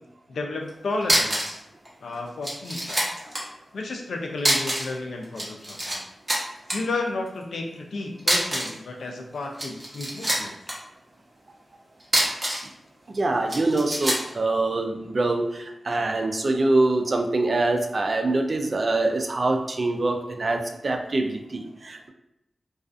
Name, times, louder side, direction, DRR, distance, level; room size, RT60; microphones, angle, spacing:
voice 1, 0.3-1.6 2.0-3.1 3.7-6.0 6.7-10.5, left 2 dB, 85° left, 2 dB, 0.4 m, -32 dB
sound 1, 0.7-0.8 1.0-1.6 1.8-1.9 2.4-3.4 4.4-5.0 5.2-6.0 6.3-6.8 8.2-8.8 9.4-10.7 12.0-12.7 13.5-14.3, right 1 dB, 30° right, 0.8 m, -25 dB
voice 2, 13.1-22.1, right 2 dB, 45° right, 4 dB, 0.3 m, -24 dB
2.3 x 2.3 x 2.4 m, 0.86 s
wide cardioid pair, 80°, 0 cm